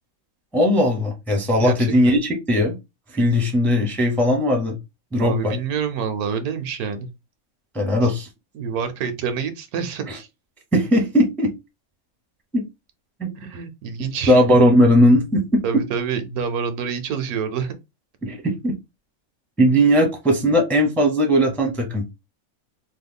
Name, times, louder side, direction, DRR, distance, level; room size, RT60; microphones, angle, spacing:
voice 1, 0.5-2.8 3.1-4.8 5.1-5.5 7.7-8.3 10.1-10.2 10.7-11.5 12.5-12.6 13.2-13.3 14.3-15.6 18.2-18.7 19.6-22.0, equal, ahead, 0.5 m, -18 dB
voice 2, 1.6-2.2 5.2-7.1 8.0-8.1 8.5-10.3 13.4-14.4 15.6-17.7, right 6 dB, 85° right, 1.2 m, -27 dB
3.1 x 2.2 x 3.5 m
omnidirectional pair, 1.5 m